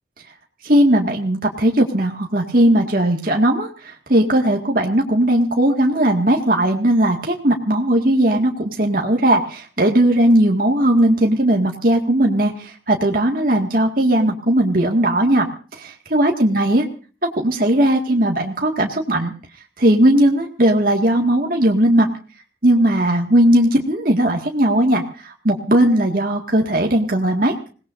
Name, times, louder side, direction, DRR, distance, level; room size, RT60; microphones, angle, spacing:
voice 1, 0.6-3.7 4.1-15.5 15.8-16.9 17.4-19.3 19.8-22.1 22.6-27.5, right 1 dB, 50° right, 0 dB, 2.1 m, -17 dB
26.5 x 18.5 x 2.7 m, 0.38 s
head